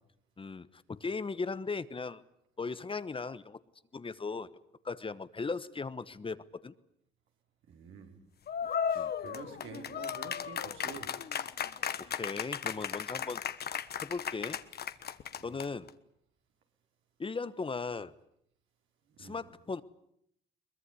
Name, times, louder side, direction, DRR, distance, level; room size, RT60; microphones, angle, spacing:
voice 1, 0.4-2.2 2.6-3.6 3.9-4.5 4.8-6.7 8.9-9.1 12.0-13.4 14.0-14.6 15.4-15.9 17.2-18.1 19.2-19.8, left 4 dB, 25° left, 15 dB, 1.1 m, -37 dB
voice 2, 7.7-8.1 8.9-11.1 15.4-15.5 19.2-19.4, right 6 dB, 80° right, 3 dB, 5.1 m, -48 dB
sound 1, 8.5-15.9, left 8 dB, 55° left, 1.3 m, -36 dB
22.5 x 21.0 x 9.7 m, 0.74 s
cardioid pair, 90°, 20 cm